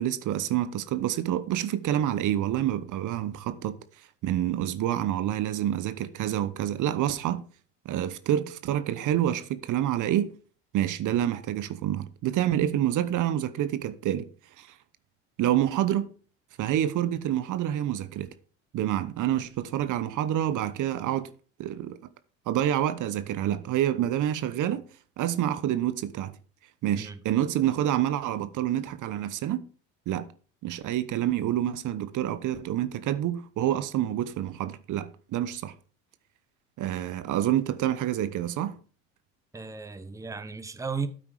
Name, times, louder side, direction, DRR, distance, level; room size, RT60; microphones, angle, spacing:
voice 1, 0.0-3.8 4.2-7.5 7.8-10.3 10.7-14.3 14.6-14.7 15.4-16.1 16.6-18.3 18.7-21.3 21.6-22.0 22.5-24.8 25.2-26.3 26.8-29.7 30.1-30.3 30.6-35.7 36.8-38.8, right 11 dB, 50° right, 1.0 m, -27 dB
voice 2, 39.5-41.1, right 5 dB, 10° right, 1.0 m, -35 dB
8.9 x 8.5 x 4.8 m
hypercardioid pair, 80°, 40 cm